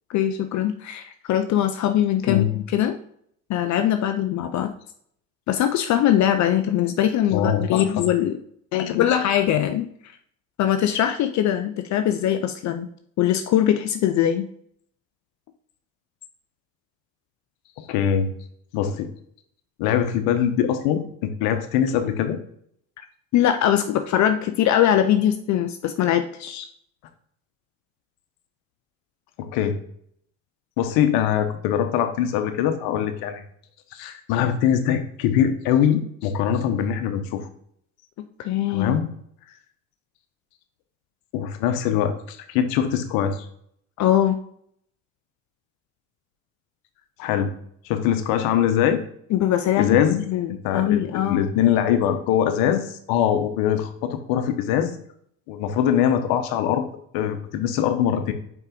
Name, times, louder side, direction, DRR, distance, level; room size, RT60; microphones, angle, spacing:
voice 1, 0.1-3.0 3.5-4.7 5.5-8.4 9.0-10.2 10.6-12.9 13.2-14.5 23.0-23.1 23.3-26.7 38.4-38.9 44.0-44.4 49.3-50.0 50.3-51.5, left 11 dB, 45° left, 8 dB, 0.6 m, -22 dB
voice 2, 7.3-8.0 8.7-9.0 17.8-18.3 18.7-19.1 19.8-22.4 29.4-29.8 30.8-33.4 33.9-37.4 38.7-39.1 41.3-43.4 47.2-47.5 47.8-49.0 49.8-50.2 50.5-54.9 55.5-56.9 57.1-58.3, left 9 dB, 70° left, 8 dB, 1.0 m, -22 dB
5.4 x 4.8 x 3.9 m, 0.67 s
hypercardioid pair, 80°, 39 cm